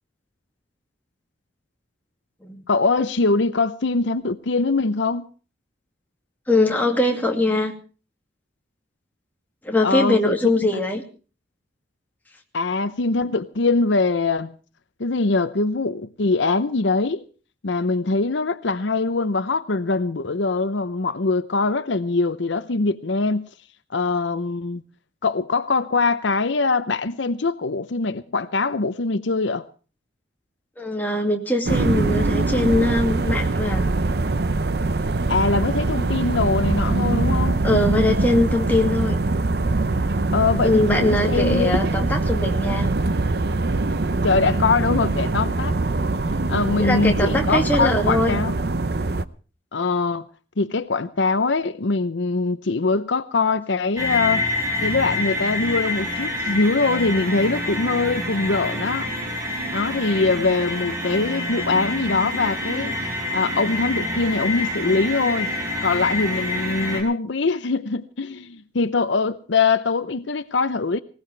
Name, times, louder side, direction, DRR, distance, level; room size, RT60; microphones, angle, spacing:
voice 1, 2.7-5.3 9.8-10.4 12.5-14.5 15.0-17.2 17.6-23.5 23.9-24.8 25.2-29.6 35.3-37.6 40.3-41.9 44.2-45.7 46.5-48.6 49.7-50.3 50.6-54.5 54.8-59.1 59.7-62.9 63.3-65.5 65.8-71.0, left 3 dB, 70° left, 0.7 m, -22 dB
voice 2, 6.5-7.7 9.6-11.0 30.8-33.9 37.6-39.2 40.6-42.9 46.8-48.4, left 2 dB, 10° left, 2.2 m, -21 dB
sound 1, 31.7-49.2, right 2 dB, 55° right, 0.7 m, -23 dB
sound 2, 54.0-67.0, left 2 dB, 15° right, 4.8 m, -27 dB
20.0 x 18.0 x 3.3 m
head